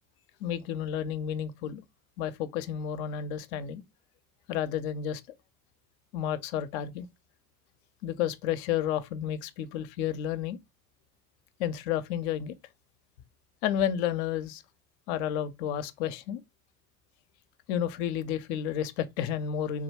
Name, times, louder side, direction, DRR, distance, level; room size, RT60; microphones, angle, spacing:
voice 1, 0.4-1.8 2.2-3.8 4.5-5.2 6.1-7.1 8.0-10.6 11.6-12.6 13.6-14.6 15.1-16.4 17.7-19.8, left 9 dB, 50° left, 0.5 m, -31 dB
3.6 x 2.2 x 3.2 m
figure-of-eight pair, 70°, 44 cm